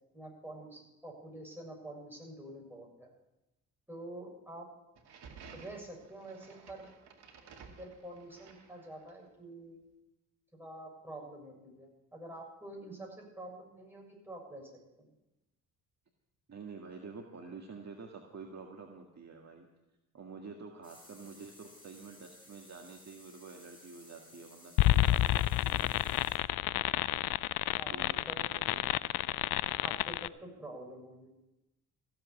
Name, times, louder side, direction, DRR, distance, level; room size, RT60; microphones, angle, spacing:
voice 1, 0.1-3.1 3.9-4.7 5.5-6.9 7.7-9.8 10.5-14.7 15.0-15.1 27.8-28.4 29.8-31.3, right 1 dB, 5° right, -1 dB, 7.1 m, -47 dB
sound 1, 4.9-9.3, right 5 dB, 60° right, 2.4 m, -54 dB
voice 2, 16.5-19.7 20.1-26.0 27.8-29.0, right 4 dB, 35° right, 1 dB, 1.9 m, -48 dB
sound 2, 20.8-26.4, left 1 dB, 20° left, 6.4 m, -57 dB
sound 3, 24.8-30.3, left 15 dB, 55° left, 0.5 m, -29 dB
15.5 x 7.8 x 8.4 m, 0.98 s
hypercardioid pair, 50°, 44 cm